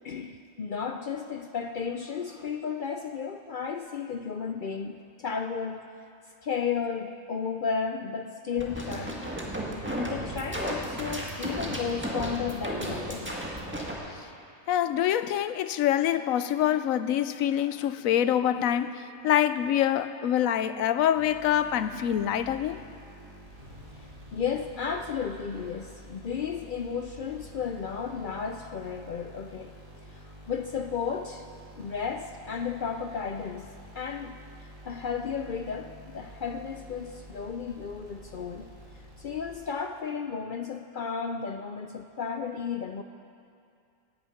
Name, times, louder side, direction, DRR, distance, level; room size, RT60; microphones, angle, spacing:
voice 1, 0.0-5.9 6.4-9.2 10.0-13.4 24.3-29.7 30.1-31.5 31.8-33.7 33.9-34.4 34.8-38.7 39.2-43.0, left 6 dB, 65° left, 6 dB, 0.5 m, -33 dB
sound 1, 8.6-13.9, right 1 dB, 10° right, 1.7 m, -34 dB
voice 2, 14.7-22.8, left 10 dB, 80° left, 12 dB, 1.0 m, -25 dB
sound 2, 21.1-39.9, equal, 80° right, 4.2 m, -49 dB
17.5 x 10.0 x 5.8 m, 2.4 s
omnidirectional pair, 1.4 m